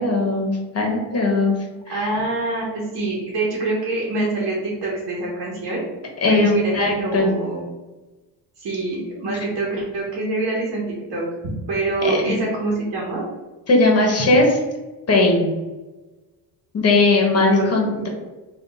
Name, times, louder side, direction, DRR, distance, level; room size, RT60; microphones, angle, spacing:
voice 1, 0.0-1.5 1.9-2.1 6.2-7.3 12.0-12.4 13.7-14.6 15.1-15.5 16.7-18.1, left 2 dB, 35° left, 0 dB, 1.1 m, -18 dB
voice 2, 1.9-5.8 6.3-7.6 8.6-10.8 11.1-11.3 11.7-13.2 17.6-18.0, right 2 dB, 60° right, -4 dB, 1.2 m, -25 dB
3.4 x 2.6 x 4.0 m, 1.2 s
cardioid pair, 115°, 43 cm